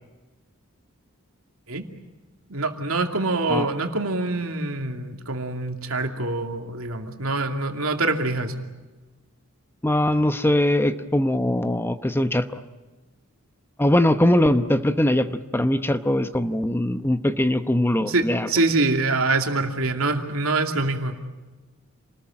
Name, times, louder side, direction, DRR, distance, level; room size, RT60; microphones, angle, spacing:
voice 1, 2.5-8.5 18.1-21.2, right 2 dB, 80° right, 4 dB, 2.6 m, -25 dB
voice 2, 9.8-12.6 13.8-18.5, left 1 dB, 10° left, 10 dB, 0.9 m, -21 dB
28.0 x 20.0 x 8.8 m, 1.2 s
head